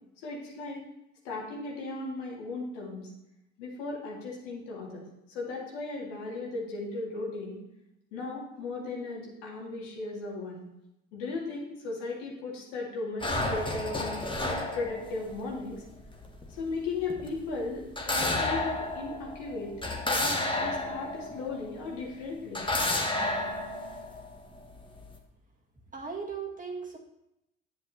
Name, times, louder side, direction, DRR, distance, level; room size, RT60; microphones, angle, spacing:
voice 1, 0.2-0.8 1.2-3.1 3.6-7.6 8.1-10.6 11.1-14.3 14.7-15.8 16.5-19.7 20.1-22.6, left 3 dB, 75° left, -3 dB, 2.2 m, -36 dB
sound 1, 13.2-22.0 22.5-25.2, left 2 dB, 15° left, 1.3 m, -32 dB
voice 2, 25.9-27.0, right 5 dB, 20° right, -2 dB, 1.8 m, -37 dB
10.0 x 7.4 x 2.8 m, 0.87 s
hypercardioid pair, 60°, 36 cm